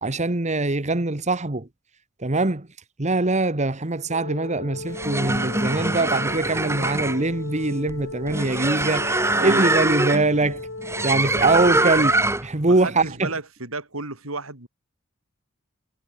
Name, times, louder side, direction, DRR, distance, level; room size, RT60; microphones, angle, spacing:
voice 1, 0.0-1.7 2.2-2.7 3.0-10.7 11.0-12.1 12.4-13.3, right 2 dB, 35° right, 1.5 m, -23 dB
sound 1, 4.1-12.3, left 3 dB, 70° left, 2.2 m, -36 dB
sound 2, 4.8-12.6, right 2 dB, 15° right, 1.8 m, -24 dB
voice 2, 12.6-14.7, right 3 dB, 80° right, 6.6 m, -33 dB
head